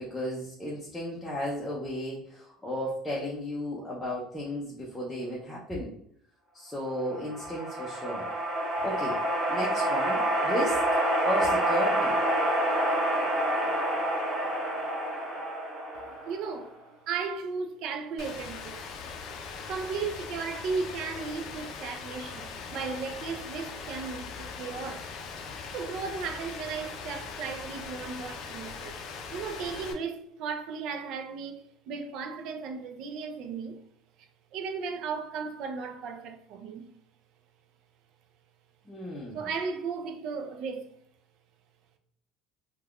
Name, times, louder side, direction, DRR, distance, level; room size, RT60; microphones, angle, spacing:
voice 1, 0.0-5.9 6.5-8.3 8.8-9.2 9.5-10.8 11.2-12.2 38.9-39.4, equal, 10° left, 0.5 m, -34 dB
sound 1, 7.0-16.6, right 1 dB, 15° right, 1.1 m, -28 dB
voice 2, 15.9-18.8 19.7-25.1 25.7-29.0 29.3-33.8 34.5-36.9 39.0-40.9, right 5 dB, 60° right, 0.4 m, -35 dB
Rain, 18.2-29.9, left 5 dB, 55° left, 0.4 m, -40 dB
3.3 x 2.2 x 2.3 m
cardioid pair, 135°, 0 cm